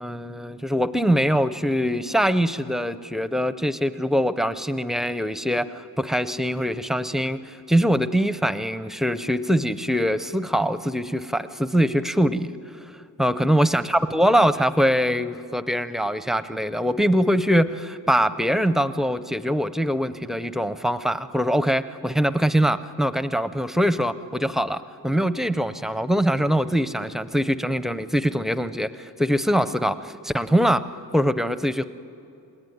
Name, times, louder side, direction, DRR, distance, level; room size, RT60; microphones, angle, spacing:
voice 1, 0.0-12.5 13.2-28.9 29.2-30.8 31.1-31.8, equal, ahead, 13 dB, 0.5 m, -23 dB
28.5 x 20.5 x 9.3 m, 2.9 s
wide cardioid pair, 170°, 36 cm